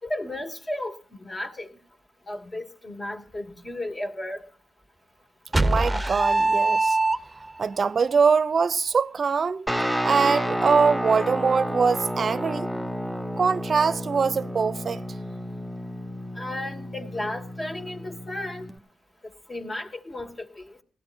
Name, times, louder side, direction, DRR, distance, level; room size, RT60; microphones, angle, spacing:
voice 1, 0.0-1.7 2.3-4.4 16.4-18.7 19.5-20.8, left 1 dB, 30° left, 2.7 m, -34 dB
sound 1, 5.5-7.6, right 2 dB, 15° right, 0.9 m, -22 dB
voice 2, 5.6-7.0 7.6-9.7 10.0-12.7 13.4-15.0, right 5 dB, 55° right, 0.6 m, -23 dB
Guitar, 9.7-18.8, equal, 5° left, 1.3 m, -31 dB
19.0 x 15.5 x 2.8 m
supercardioid pair, 50°, 0 cm